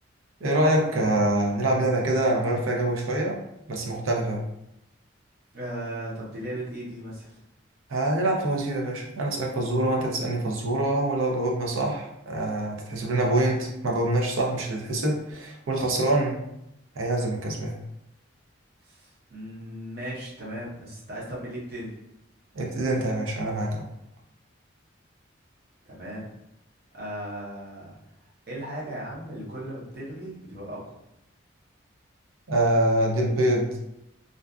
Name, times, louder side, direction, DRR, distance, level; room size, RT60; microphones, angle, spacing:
voice 1, 0.4-3.4 3.7-4.4 7.9-16.4 16.9-17.8 22.5-23.9 32.5-33.7, right 1 dB, 85° right, 0 dB, 0.6 m, -25 dB
voice 2, 5.5-7.4 18.8-22.0 25.8-26.3 26.9-28.0 28.5-31.0, right 1 dB, 50° right, -5 dB, 0.8 m, -37 dB
2.5 x 2.3 x 2.3 m, 0.83 s
head